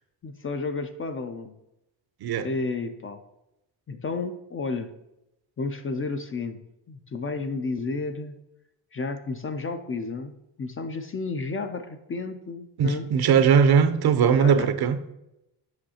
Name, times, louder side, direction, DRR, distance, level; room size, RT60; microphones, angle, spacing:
voice 1, 0.2-1.5 2.4-3.2 3.9-4.9 5.6-6.6 6.9-8.4 8.9-13.1 14.4-14.7, left 3 dB, 30° left, 8 dB, 0.4 m, -32 dB
voice 2, 12.8-15.0, right 7 dB, 60° right, 11 dB, 0.6 m, -20 dB
7.8 x 5.4 x 2.8 m, 0.89 s
cardioid pair, 105°, 44 cm